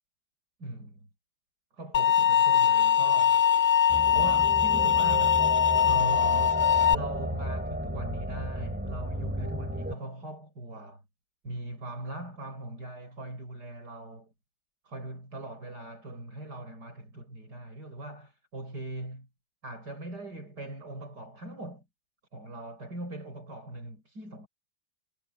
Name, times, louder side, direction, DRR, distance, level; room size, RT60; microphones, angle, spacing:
voice 1, 0.6-1.0 1.7-3.4 4.1-5.4 5.8-11.0 11.4-14.3 14.9-19.3 19.6-21.9 22.3-24.5, right 2 dB, 70° right, 7.4 m, -40 dB
sound 1, 1.9-6.9, left 8 dB, 45° left, 0.8 m, -22 dB
sound 2, 3.9-9.9, equal, 5° right, 2.9 m, -33 dB
omnidirectional pair, 1.8 m